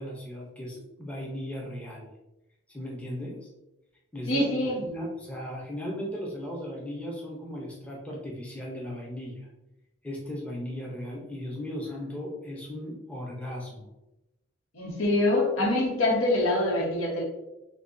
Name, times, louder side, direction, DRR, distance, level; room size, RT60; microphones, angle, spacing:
voice 1, 0.0-2.1 2.7-3.5 4.1-4.4 4.8-9.5 10.0-13.8, left 1 dB, 5° left, -3 dB, 0.7 m, -37 dB
voice 2, 4.3-4.8 14.7-17.2, left 1 dB, 80° left, -1 dB, 1.2 m, -25 dB
6.5 x 2.3 x 2.6 m, 0.95 s
head